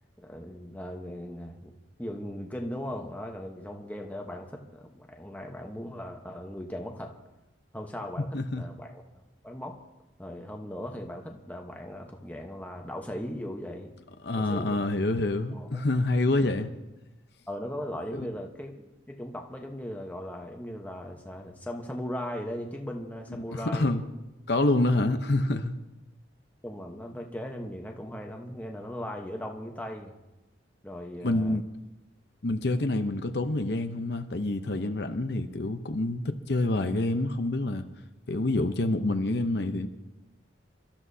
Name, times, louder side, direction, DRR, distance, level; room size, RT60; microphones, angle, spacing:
voice 1, 0.2-1.7 2.0-7.2 7.7-9.7 10.2-13.9 14.3-14.8 15.5-15.9 17.5-18.7 19.1-23.9 26.6-30.1 30.8-31.6, equal, 10° left, 1 dB, 1.1 m, -38 dB
voice 2, 8.3-8.6 14.2-16.7 18.1-18.3 23.5-24.0 24.5-25.7 31.2-31.6 32.4-37.9 38.3-39.9, left 2 dB, 55° left, 7 dB, 0.8 m, -27 dB
27.5 x 13.5 x 2.8 m, 1.0 s
head